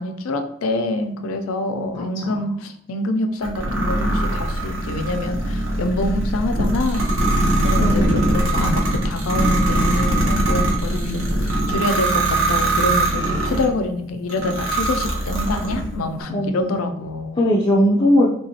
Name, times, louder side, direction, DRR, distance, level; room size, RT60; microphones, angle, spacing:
voice 1, 0.0-7.2 7.6-17.5, left 2 dB, 85° left, 7 dB, 0.4 m, -26 dB
voice 2, 1.9-2.5 7.8-8.2 10.9-11.5 16.3-16.9 17.4-18.3, equal, 25° left, -5 dB, 0.4 m, -20 dB
sound 1, 3.4-13.7 14.3-15.9, right 1 dB, 75° right, 0.9 m, -21 dB
3.5 x 2.9 x 2.8 m, 0.71 s
head